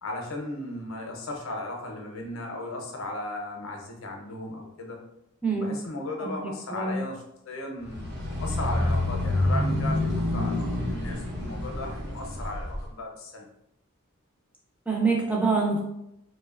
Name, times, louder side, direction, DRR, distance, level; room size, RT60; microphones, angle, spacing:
voice 1, 0.0-5.0 5.5-13.5, left 2 dB, 70° left, 1 dB, 0.5 m, -36 dB
voice 2, 5.4-5.8 6.2-7.0 14.9-15.8, right 4 dB, 5° right, -2 dB, 0.4 m, -26 dB
sound 1, 7.9-12.8, left 1 dB, 55° right, 0.8 m, -28 dB
2.7 x 2.1 x 2.3 m, 0.80 s
head